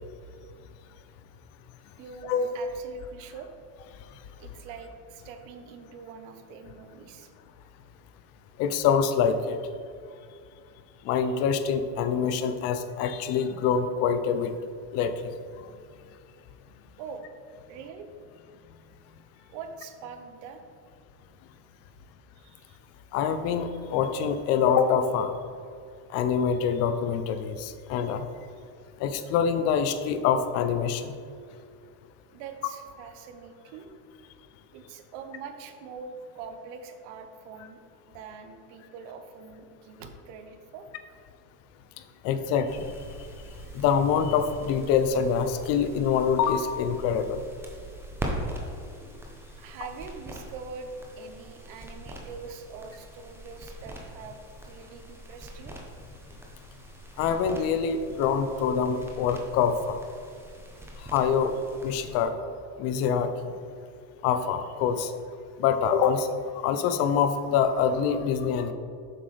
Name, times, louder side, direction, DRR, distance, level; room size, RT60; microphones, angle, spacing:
voice 1, 2.0-3.5 4.4-7.3 17.0-17.2 17.7-18.1 19.4-20.6 22.4-22.8 32.3-33.9 34.7-37.8 38.1-40.9 49.6-55.8, right 5 dB, 55° right, 6 dB, 0.9 m, -43 dB
voice 2, 8.6-9.6 11.0-14.5 14.9-15.1 23.1-25.3 26.1-28.2 29.0-31.2 42.2-43.0 43.7-47.4 57.2-60.0 61.0-61.5 61.8-62.3 62.8-63.5 64.2-65.1 65.6-66.3 66.6-68.7, left 7 dB, 35° left, 9 dB, 0.4 m, -25 dB
sound 1, 42.7-62.2, right 1 dB, 5° right, 0.6 m, -42 dB
7.7 x 5.8 x 3.3 m, 2.3 s
supercardioid pair, 130°, 48 cm